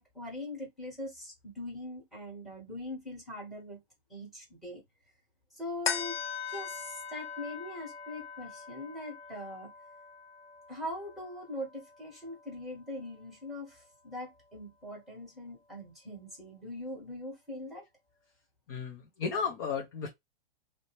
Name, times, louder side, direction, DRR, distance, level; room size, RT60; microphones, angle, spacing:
voice 1, 0.0-3.8 4.1-4.8 5.5-9.7 10.7-17.8, left 1 dB, ahead, 1.3 m, -42 dB
Singing Bowl Female Overtone, 5.8-12.6 13.1-13.2, left 6 dB, 85° left, 0.8 m, -40 dB
voice 2, 18.7-20.1, left 5 dB, 25° left, 0.4 m, -34 dB
2.6 x 2.1 x 3.0 m
hypercardioid pair, 150°, 29 cm